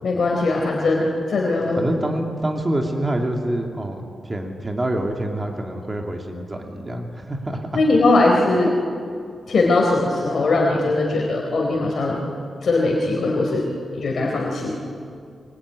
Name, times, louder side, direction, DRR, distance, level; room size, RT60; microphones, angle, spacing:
voice 1, 0.0-1.8 7.7-8.7 9.5-12.2 12.6-14.7, left 2 dB, 55° left, -1 dB, 3.9 m, -20 dB
voice 2, 1.8-7.7 8.6-8.7 14.6-14.7, right 1 dB, 20° right, 2 dB, 2.7 m, -26 dB
24.5 x 24.5 x 10.0 m, 2.3 s
wide cardioid pair, 155°, 0 cm